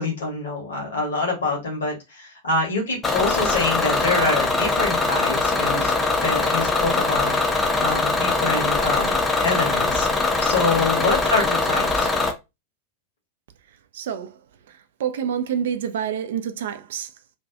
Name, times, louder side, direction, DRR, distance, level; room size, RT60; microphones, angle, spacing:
voice 1, 0.0-5.9 6.2-7.3 7.8-9.1 9.4-10.1 10.4-12.1, left 3 dB, 65° left, 1.1 m, -25 dB
Bus / Engine, 3.0-12.3, left 3 dB, 15° left, 0.5 m, -22 dB
voice 2, 13.9-14.4 14.7-17.1, right 8 dB, 60° right, 0.4 m, -28 dB
2.6 x 2.3 x 2.3 m
figure-of-eight pair, 90°, 0 cm